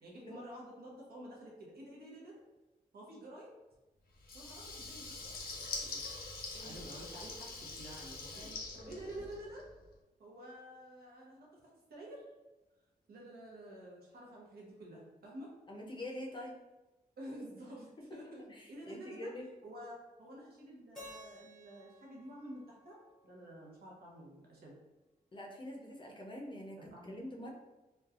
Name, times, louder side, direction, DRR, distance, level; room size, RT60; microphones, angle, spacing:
voice 1, 0.0-2.4 2.9-3.5 4.3-6.0 6.6-9.6 10.2-11.5 11.9-12.2 13.1-15.5 17.2-19.3 19.6-23.0 23.2-24.8 26.8-27.1, right 1 dB, 85° right, -3 dB, 0.8 m, -50 dB
Water tap faucet / Liquid, 4.2-9.7, left 3 dB, 80° left, 0.6 m, -44 dB
voice 2, 8.3-9.2 15.7-16.5 18.5-19.5 25.3-27.5, left 1 dB, 30° left, 0 dB, 0.5 m, -46 dB
Keyboard (musical), 20.9-23.9, left 1 dB, 5° left, 0.8 m, -55 dB
3.1 x 2.2 x 2.4 m, 1.1 s
wide cardioid pair, 120°, 16 cm